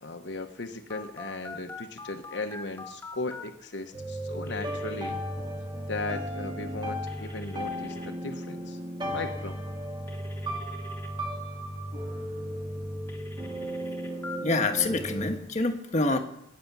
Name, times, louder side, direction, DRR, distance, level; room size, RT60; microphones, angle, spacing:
voice 1, 0.0-5.2 5.9-8.8 9.1-9.6, left 3 dB, 70° left, 5 dB, 1.1 m, -37 dB
Telephone, 0.9-3.4 4.5-5.1 7.1-8.1 10.1-11.1 13.1-14.4, left 3 dB, 10° left, 2.2 m, -44 dB
sound 1, 3.9-15.3, equal, 25° right, 2.5 m, -35 dB
voice 2, 14.4-16.2, left 3 dB, 40° left, 5 dB, 1.3 m, -26 dB
18.5 x 9.5 x 6.1 m, 0.80 s
head